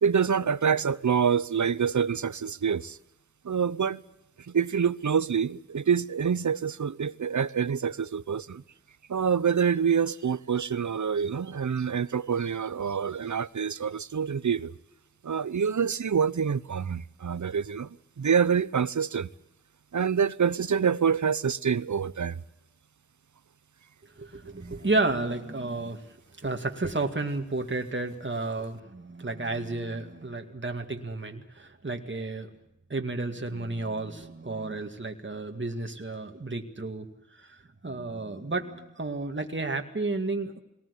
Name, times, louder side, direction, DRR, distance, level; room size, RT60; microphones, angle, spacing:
voice 1, 0.0-3.0 3.4-4.0 4.5-8.6 9.1-14.7 15.2-19.3 19.9-22.4, right 7 dB, 70° right, 0.8 m, -26 dB
voice 2, 24.2-26.2 26.4-32.5 32.9-40.6, right 2 dB, 40° right, 2.2 m, -32 dB
21.5 x 19.0 x 8.4 m
wide cardioid pair, 45°, 30 cm